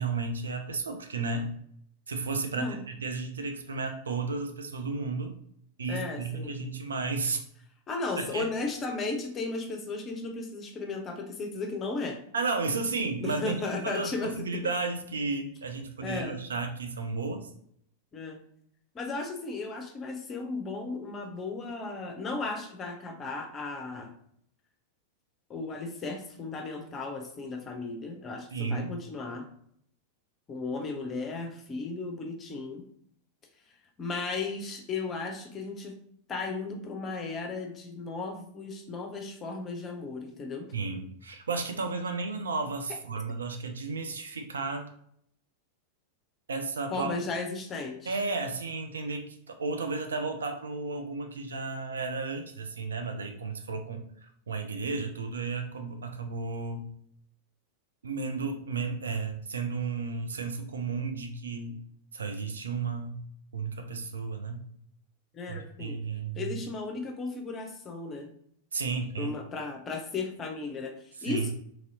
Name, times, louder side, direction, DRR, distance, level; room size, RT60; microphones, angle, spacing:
voice 1, 0.0-1.5 2.1-5.4 5.8-7.4 8.2-8.5 12.3-17.5 28.5-28.9 40.7-44.9 46.5-47.1 48.1-54.0 54.5-56.8 58.0-61.7 62.1-63.2 63.5-64.6 65.5-66.4 68.7-69.3 71.2-71.5, right 4 dB, 70° right, 5 dB, 0.4 m, -33 dB
voice 2, 5.9-6.7 7.9-12.2 13.2-14.6 16.0-16.4 18.1-18.4 18.9-24.1 25.5-29.4 30.5-32.8 34.0-35.9 36.3-40.7 42.9-43.0 46.9-48.1 65.3-66.0 66.4-68.3 69.2-71.5, left 3 dB, 25° left, 4 dB, 0.6 m, -35 dB
2.9 x 2.7 x 2.7 m, 0.67 s
figure-of-eight pair, 90°, 0 cm